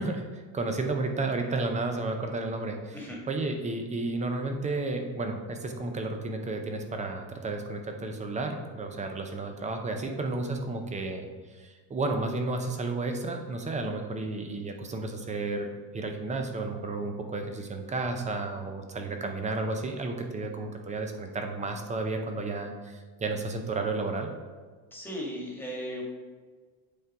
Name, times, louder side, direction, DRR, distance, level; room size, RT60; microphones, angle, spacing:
voice 1, 0.0-3.0 3.3-24.3, right 3 dB, 15° right, 4 dB, 0.5 m, -32 dB
voice 2, 24.9-26.0, equal, 5° left, -3 dB, 1.4 m, -36 dB
8.5 x 3.7 x 4.6 m, 1.5 s
cardioid pair, 145°, 49 cm